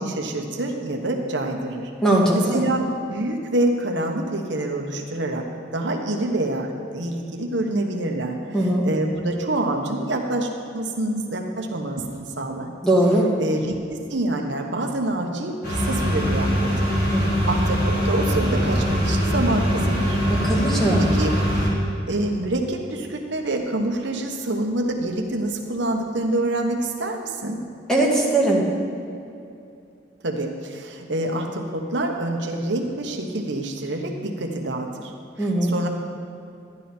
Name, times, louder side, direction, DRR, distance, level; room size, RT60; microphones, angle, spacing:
voice 1, 0.0-1.9 2.3-10.5 10.7-12.7 13.4-20.2 21.0-21.4 22.1-27.6 30.2-35.1 35.4-35.9, right 1 dB, 70° right, 2 dB, 1.1 m, -26 dB
voice 2, 2.0-2.6 8.5-8.8 12.8-13.3 17.1-17.2 20.3-21.1 27.9-28.6 35.4-35.7, right 1 dB, 5° left, -4 dB, 1.9 m, -20 dB
sound 1, 15.6-21.7, equal, 55° left, 3.2 m, -22 dB
12.5 x 10.5 x 4.4 m, 2.6 s
head